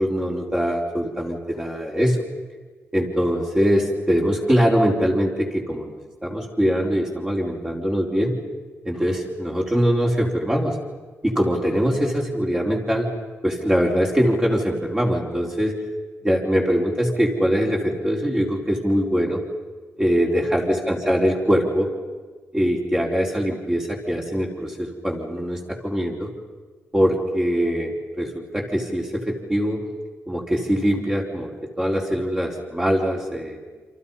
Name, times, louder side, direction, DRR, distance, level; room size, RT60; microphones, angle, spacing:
voice 1, 0.0-2.2 2.9-5.9 6.2-8.4 8.8-10.8 11.2-13.1 13.4-15.8 16.2-19.4 20.0-21.9 22.5-26.3 26.9-29.8 30.3-33.6, equal, 15° right, -2 dB, 4.4 m, -22 dB
29.0 x 27.0 x 5.7 m, 1.4 s
wide cardioid pair, 130°, 5 cm